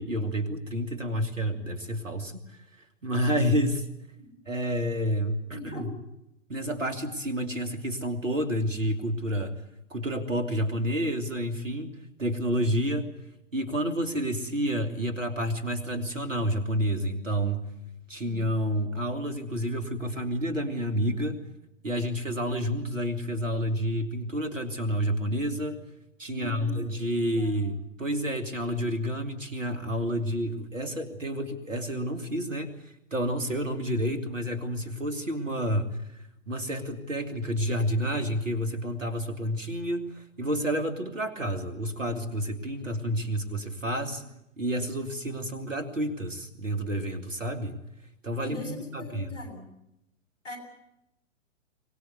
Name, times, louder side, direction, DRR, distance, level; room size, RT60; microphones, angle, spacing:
voice 1, 0.0-3.9 4.5-5.9 6.5-9.6 9.9-13.1 13.5-17.6 18.1-21.4 21.8-25.8 26.2-44.2 44.6-47.8 48.2-49.3, equal, 85° right, 7 dB, 3.0 m, -29 dB
voice 2, 5.5-5.9 26.3-27.6 48.4-49.7 50.4-50.6, left 2 dB, 75° left, 5 dB, 7.9 m, -42 dB
23.5 x 20.0 x 8.1 m, 0.83 s
figure-of-eight pair, 110°, 37 cm